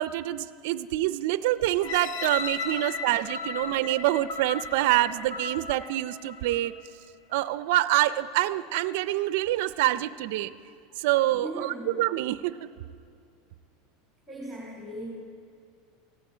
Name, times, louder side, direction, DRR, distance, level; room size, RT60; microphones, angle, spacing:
voice 1, 0.0-6.7 7.3-10.5 11.0-12.7, right 15 dB, 60° right, 14 dB, 0.5 m, -26 dB
sound 1, 1.8-6.8 7.3-7.4, left 5 dB, 50° left, 1.1 m, -36 dB
voice 2, 11.4-11.9 14.3-15.1, right 1 dB, 5° right, -4 dB, 2.9 m, -38 dB
18.0 x 15.5 x 5.0 m, 2.3 s
supercardioid pair, 170°, 0 cm